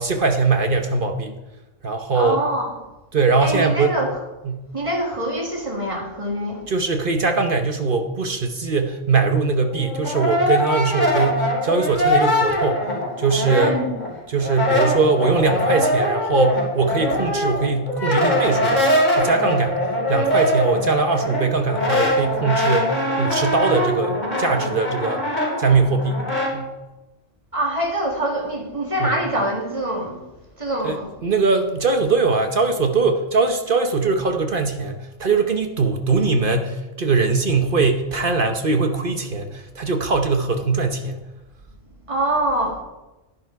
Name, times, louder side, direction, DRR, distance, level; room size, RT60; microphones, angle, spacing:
voice 1, 0.0-1.4 1.8-2.4 3.1-3.9 4.4-4.6 6.7-12.8 13.2-13.8 14.3-18.8 19.1-19.8 20.1-25.2 25.6-26.2 26.5-26.7 29.0-29.1 30.8-41.2, right 4 dB, 45° right, 6 dB, 1.1 m, -21 dB
voice 2, 2.1-2.7 3.4-4.1 4.7-6.6 13.6-13.9 27.5-30.2 30.6-31.1 42.1-42.8, right 1 dB, 25° right, 1 dB, 2.3 m, -24 dB
Brass instrument, 9.7-14.1 14.4-26.5, left 1 dB, 35° left, 4.3 m, -22 dB
11.0 x 11.0 x 4.7 m, 1.0 s
omnidirectional pair, 1.3 m